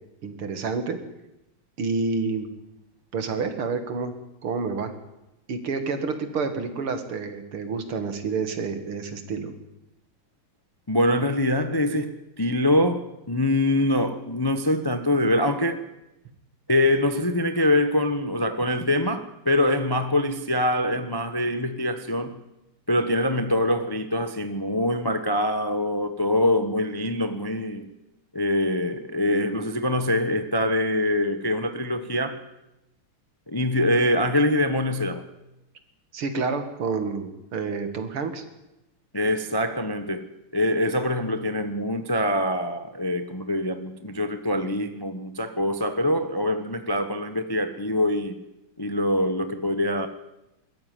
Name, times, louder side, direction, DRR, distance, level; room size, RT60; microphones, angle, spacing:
voice 1, 0.2-1.0 1.8-2.5 3.1-4.1 4.4-4.9 5.5-9.5 36.1-38.4, right 4 dB, 80° right, 2.8 m, -29 dB
voice 2, 10.9-15.8 16.7-22.4 22.9-27.9 28.3-32.4 33.5-35.3 39.1-40.2 40.5-48.4 48.8-50.1, left 1 dB, 25° left, 0.5 m, -24 dB
21.5 x 14.0 x 9.5 m
omnidirectional pair, 2.3 m